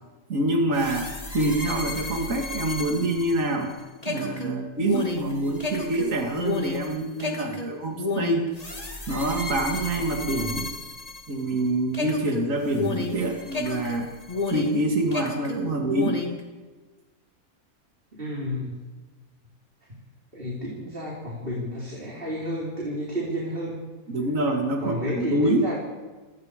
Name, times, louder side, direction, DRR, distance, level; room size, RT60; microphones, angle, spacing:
voice 1, 0.3-3.7 4.1-8.5 9.1-10.7 11.3-14.1 14.5-16.2 24.1-25.7, right 1 dB, 65° right, 2 dB, 2.6 m, -26 dB
sound 1, 0.7-11.6 11.9-14.8 15.1-16.4, left 3 dB, 25° left, 2.7 m, -32 dB
voice 2, 18.2-18.7 20.3-23.8 24.8-25.7, equal, 40° right, -4 dB, 4.5 m, -31 dB
27.5 x 18.5 x 5.1 m, 1.3 s
omnidirectional pair, 1.5 m